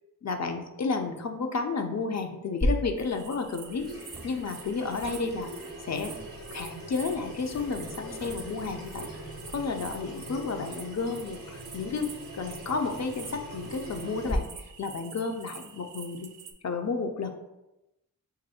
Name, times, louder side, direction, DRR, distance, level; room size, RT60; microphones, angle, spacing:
voice 1, 0.2-6.1 6.5-9.1 9.5-16.3 16.6-17.3, left 4 dB, 50° left, 5 dB, 0.5 m, -32 dB
Water tap faucet / Sink (filling or washing), 2.6-14.4, equal, 70° left, 1.5 m, -38 dB
sound 1, 3.0-16.5, right 7 dB, 60° right, 0.5 m, -48 dB
sound 2, 4.0-6.8 7.4-9.9, right 1 dB, 5° right, 0.5 m, -50 dB
3.0 x 2.6 x 4.1 m, 0.95 s
cardioid pair, 50°, 35 cm